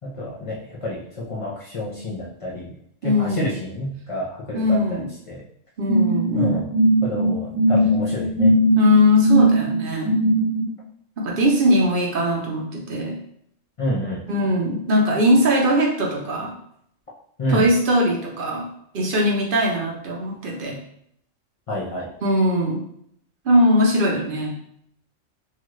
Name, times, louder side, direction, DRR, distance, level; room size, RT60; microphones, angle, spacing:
voice 1, 0.0-2.8 3.0-5.4 6.4-6.7 7.0-8.6 13.8-14.2 17.4-17.7 21.7-22.1, left 1 dB, 50° left, -5 dB, 0.4 m, -29 dB
voice 2, 3.0-3.5 4.5-5.1 5.8-6.6 8.8-10.1 11.2-13.2 14.3-16.5 17.5-18.7 18.9-20.8 22.2-22.8 23.4-24.5, left 1 dB, 50° right, -1 dB, 0.7 m, -20 dB
sound 1, 5.9-10.7, right 1 dB, 15° right, 0.7 m, -19 dB
2.9 x 2.4 x 3.0 m, 0.69 s
omnidirectional pair, 1.3 m